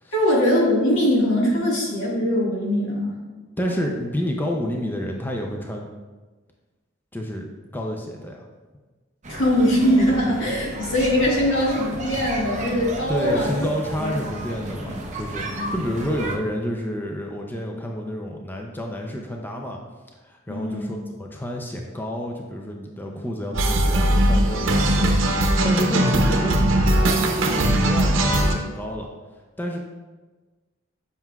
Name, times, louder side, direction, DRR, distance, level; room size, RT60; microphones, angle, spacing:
voice 1, 0.1-3.2 9.3-13.7 14.0-14.3 14.6-14.9 15.5-15.8 20.5-20.9, equal, 80° left, -4 dB, 1.7 m, -22 dB
voice 2, 3.6-5.9 7.1-8.4 13.1-19.8 20.2-29.1 29.6-29.8, equal, 10° left, 1 dB, 0.5 m, -29 dB
sound 1, 9.2-16.4, right 1 dB, 40° right, 0.7 m, -33 dB
sound 2, 23.5-28.5, right 1 dB, 85° right, 0.7 m, -19 dB
7.5 x 5.7 x 2.3 m, 1.3 s
head